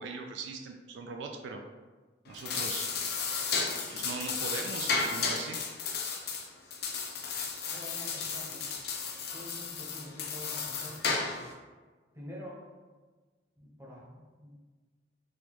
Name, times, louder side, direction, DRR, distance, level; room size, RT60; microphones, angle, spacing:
voice 1, 0.0-1.6 2.3-2.9 3.9-5.6, right 4 dB, 75° right, 3 dB, 0.3 m, -40 dB
sound 1, 2.3-11.5, left 5 dB, 60° left, 0.5 m, -34 dB
voice 2, 7.6-8.7 9.3-11.4 12.1-12.7 13.6-14.6, equal, 15° right, -5 dB, 0.8 m, -47 dB
4.3 x 2.3 x 2.9 m, 1.3 s
head